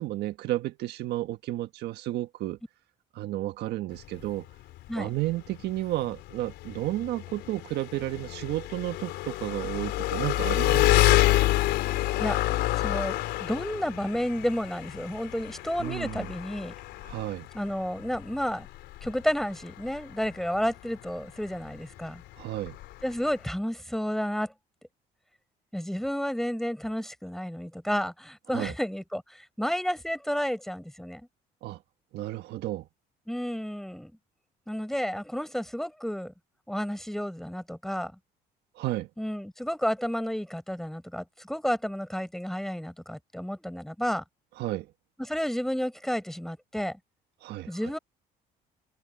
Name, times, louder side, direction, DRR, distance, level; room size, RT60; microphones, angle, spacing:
voice 1, 0.0-2.6 3.1-4.4 5.0-11.1 15.8-16.3 17.0-17.5 22.4-22.8 28.5-28.7 31.6-31.8 32.1-32.9 38.8-39.1 44.6-44.9 47.4-47.7, right 16 dB, 80° right, 1.5 m, -32 dB
Engine, 3.9-23.5, left 16 dB, 85° left, 4.1 m, -29 dB
voice 2, 12.7-16.7 17.5-18.7 19.0-22.2 23.0-24.5 25.7-31.2 33.3-34.1 34.7-36.3 36.7-38.1 39.2-44.2 45.3-47.0 47.7-48.0, equal, ahead, 7.3 m, -31 dB
cardioid pair, 110°, 17 cm